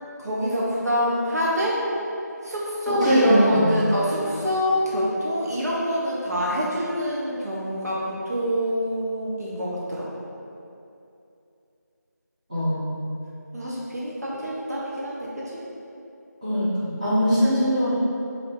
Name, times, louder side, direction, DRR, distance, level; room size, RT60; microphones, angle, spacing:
voice 1, 0.2-1.8 2.4-10.1 13.5-15.6, equal, 60° right, -6 dB, 0.6 m, -26 dB
voice 2, 2.9-3.8 12.5-13.0 16.4-17.9, equal, 25° right, -13 dB, 0.8 m, -21 dB
2.9 x 2.5 x 3.3 m, 2.7 s
figure-of-eight pair, 175°, 10 cm